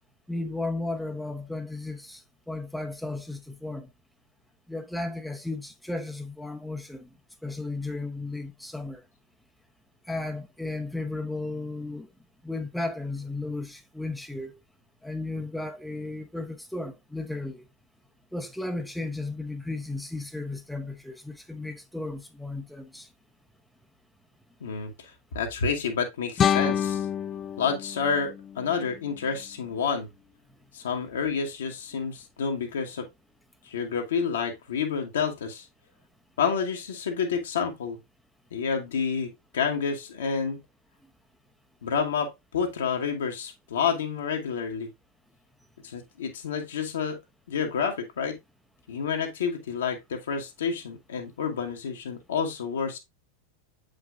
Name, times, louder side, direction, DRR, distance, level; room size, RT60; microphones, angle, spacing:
voice 1, 0.3-2.2 2.5-3.9 4.7-7.1 7.4-9.0 10.1-12.1 12.4-14.6 15.0-17.6 18.3-23.1, left 2 dB, ahead, 0.8 m, -34 dB
voice 2, 24.6-27.1 27.6-30.1 30.7-33.1 33.6-35.6 36.4-38.0 38.5-40.6 41.8-44.9 45.8-47.2 47.5-48.4 48.9-53.0, left 6 dB, 65° left, 1.3 m, -29 dB
sound 1, 26.4-29.4, left 9 dB, 25° left, 0.4 m, -28 dB
7.9 x 5.3 x 2.4 m
figure-of-eight pair, 90°, 0 cm